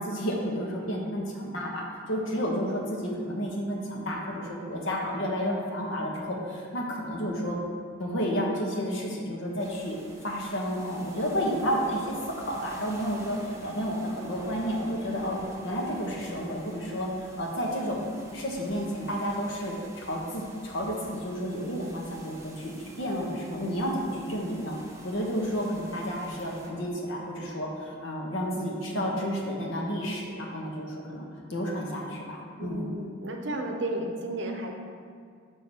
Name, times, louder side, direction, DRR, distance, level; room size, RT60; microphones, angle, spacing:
voice 1, 0.0-7.6 8.0-10.0 10.2-18.0 18.3-24.8 25.0-32.9, equal, 70° left, -1 dB, 1.1 m, -31 dB
sound 1, 9.6-26.7, right 1 dB, 15° right, 0.6 m, -48 dB
voice 2, 32.6-34.7, right 1 dB, 60° right, 2 dB, 0.7 m, -33 dB
6.3 x 3.7 x 5.3 m, 2.1 s
head